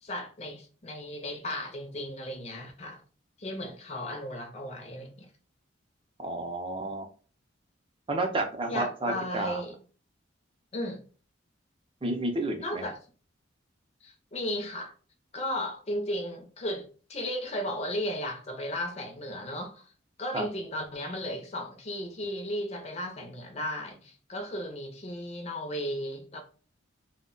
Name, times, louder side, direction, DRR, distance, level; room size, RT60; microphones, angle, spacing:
voice 1, 0.0-3.0 3.4-5.3 8.7-9.8 10.7-11.0 12.6-13.0 14.0-14.9 15.3-19.9 20.2-26.4, left 1 dB, 35° left, 0.5 m, -35 dB
voice 2, 6.2-7.0 8.1-9.6 12.0-12.8 20.3-20.4, right 2 dB, 25° right, 0.5 m, -31 dB
2.2 x 2.1 x 3.7 m
head